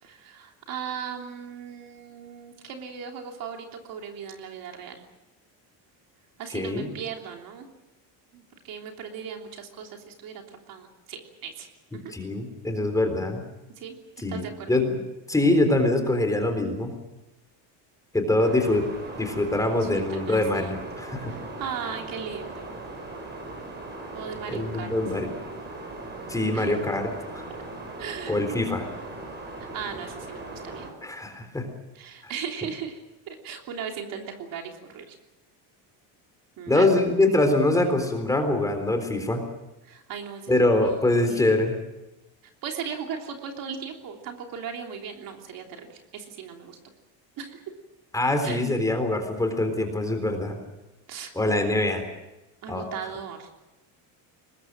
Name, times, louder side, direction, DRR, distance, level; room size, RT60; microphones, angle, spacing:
voice 1, 0.0-5.0 6.4-7.7 8.3-11.7 11.9-12.1 13.8-14.8 19.6-20.8 21.3-22.7 24.1-24.9 26.5-26.8 28.0-28.4 29.6-30.9 31.9-33.0 33.3-35.2 36.6-36.9 39.8-41.4 42.6-46.9 47.4-47.6 48.4-48.6 51.1-51.6 52.6-53.5, right 7 dB, 55° right, 3 dB, 3.2 m, -38 dB
voice 2, 6.5-6.9 11.9-13.4 14.2-15.0 15.3-16.9 18.1-18.9 19.2-21.3 24.5-25.3 26.3-27.1 27.3-27.5 28.3-28.9 31.0-31.7 32.2-32.3 36.7-39.4 40.5-41.7 48.1-50.6 51.3-52.0 52.7-52.8, left 2 dB, 10° left, 5 dB, 3.8 m, -24 dB
sound 1, 18.4-30.9, right 2 dB, 25° right, 5.9 m, -39 dB
23.5 x 20.5 x 7.7 m, 0.99 s
cardioid pair, 150°, 42 cm